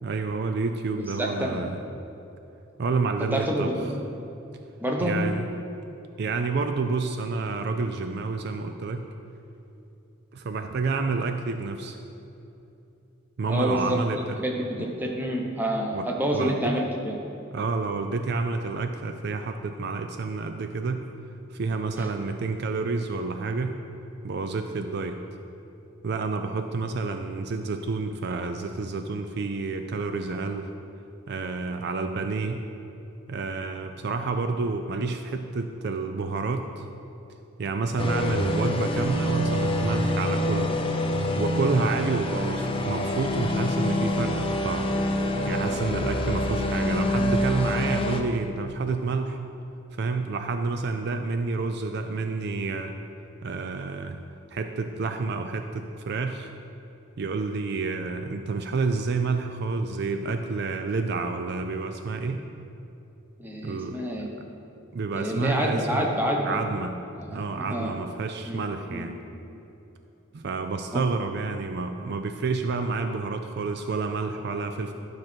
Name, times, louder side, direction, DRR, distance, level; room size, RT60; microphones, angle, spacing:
voice 1, 0.0-1.8 2.8-3.7 5.0-5.4 6.2-9.0 10.3-12.0 13.4-14.4 14.8-14.9 15.9-16.1 16.3-16.7 17.5-21.1 21.5-23.8 24.2-25.2 26.0-30.7 31.3-32.6 33.3-36.9 37.6-40.8 41.4-44.9 45.5-49.4 50.0-53.0 53.4-54.2 54.5-56.5 57.2-62.5 63.6-64.0 64.9-66.0 66.4-67.0 67.3-69.1 70.3-74.9, right 4 dB, 55° right, 7 dB, 0.4 m, -29 dB
voice 2, 0.9-1.6 3.2-3.9 4.8-5.2 13.5-14.0 14.4-17.2 22.0-22.1 63.4-64.3 65.1-66.6 67.1-67.4 67.7-68.0 68.5-68.6 68.9-69.0 70.9-71.0, equal, 10° right, 0 dB, 1.0 m, -28 dB
sound 1, 38.0-48.2, left 1 dB, 25° left, 0.6 m, -26 dB
12.0 x 6.1 x 4.5 m, 2.9 s
head